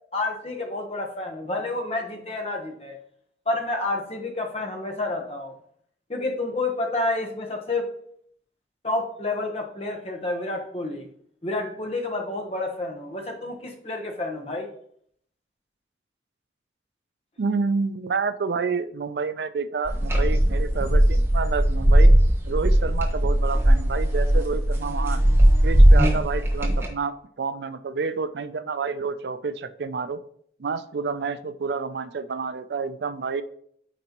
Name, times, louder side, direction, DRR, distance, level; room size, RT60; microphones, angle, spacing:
voice 1, 0.1-3.0 3.5-5.5 6.1-7.9 8.8-11.1 11.4-14.7, left 2 dB, 35° left, 2 dB, 1.1 m, -29 dB
voice 2, 17.4-22.1 22.5-25.2 25.6-30.2 30.6-33.4, right 5 dB, 75° right, 13 dB, 0.4 m, -29 dB
sound 1, 19.8-26.9, right 1 dB, 15° right, 1.1 m, -18 dB
9.1 x 4.3 x 3.0 m, 0.64 s
head